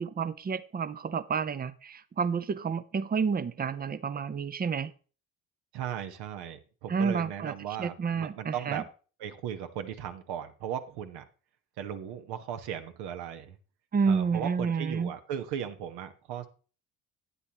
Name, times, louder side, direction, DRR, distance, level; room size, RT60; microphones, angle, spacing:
voice 1, 0.0-4.9 6.9-8.8 13.9-15.1, right 5 dB, 20° right, 0.6 m, -30 dB
voice 2, 5.7-8.9 9.2-11.2 11.8-13.6 14.1-16.5, right 9 dB, 65° right, 1.2 m, -37 dB
11.0 x 9.8 x 2.9 m
hypercardioid pair, 55°, 42 cm